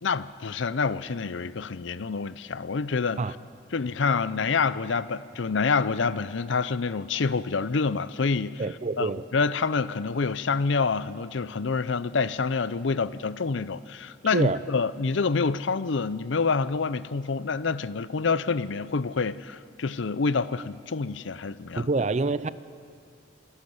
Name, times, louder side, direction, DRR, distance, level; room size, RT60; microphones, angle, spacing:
voice 1, 0.0-3.2 3.7-8.6 9.0-9.1 9.3-21.9, left 4 dB, 65° left, 0.6 m, -27 dB
voice 2, 8.6-9.3 14.2-14.7 21.8-22.5, right 3 dB, 35° right, 0.4 m, -26 dB
25.5 x 11.5 x 9.5 m
head